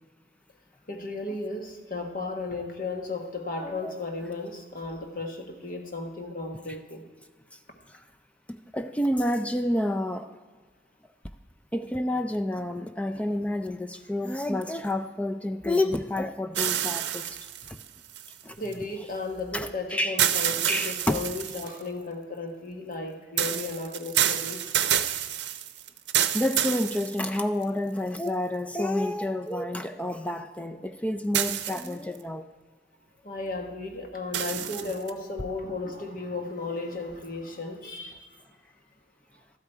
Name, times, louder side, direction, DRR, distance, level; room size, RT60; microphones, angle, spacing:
voice 1, 0.9-7.0 18.6-24.8 33.2-38.3, left 3 dB, 50° left, 3 dB, 1.4 m, -35 dB
voice 2, 3.6-3.9 7.9-8.0 8.5-10.3 11.7-17.4 17.7-17.8 18.4-18.6 19.5-20.2 20.7-21.3 26.3-32.5, left 1 dB, 10° left, 8 dB, 0.3 m, -29 dB
sound 1, 16.5-18.7 20.2-21.8 23.4-27.6 28.3-28.4 31.3-32.2 34.3-35.1, right 11 dB, 85° right, 0.6 m, -28 dB
13.0 x 8.4 x 4.5 m, 1.5 s
head